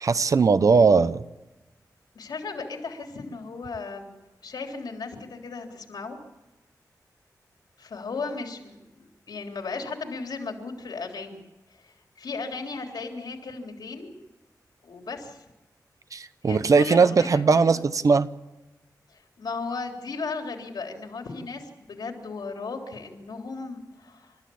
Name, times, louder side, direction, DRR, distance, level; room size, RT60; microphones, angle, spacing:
voice 1, 0.0-1.2 16.1-18.3, right 4 dB, 55° right, 13 dB, 0.9 m, -19 dB
voice 2, 2.2-4.1 4.4-6.2 7.8-8.8 9.3-11.4 11.8-14.1 14.8-15.4 16.4-17.8 19.4-24.5, left 4 dB, 85° left, 3 dB, 3.6 m, -36 dB
29.5 x 14.0 x 8.6 m, 1.1 s
wide cardioid pair, 160°, 7 cm